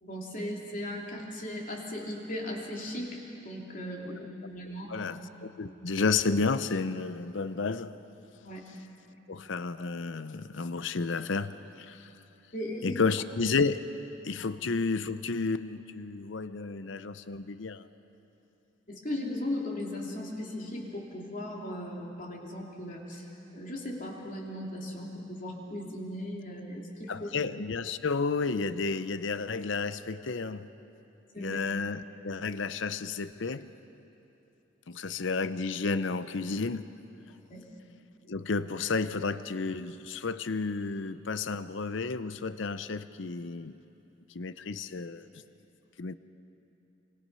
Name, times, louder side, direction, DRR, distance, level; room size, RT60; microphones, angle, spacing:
voice 1, 0.0-5.1 8.4-8.6 12.5-13.0 14.3-14.5 18.9-23.3 23.5-27.3 31.3-31.6 37.5-37.6, left 1 dB, 40° left, -1 dB, 3.2 m, -37 dB
voice 2, 4.9-7.9 9.3-11.5 11.8-12.1 12.8-13.9 14.2-17.9 27.1-30.7 31.4-33.7 34.9-36.9 38.3-43.8 44.3-45.4 46.0-46.2, left 4 dB, 70° left, 13 dB, 0.6 m, -31 dB
27.0 x 25.5 x 5.6 m, 2.9 s
head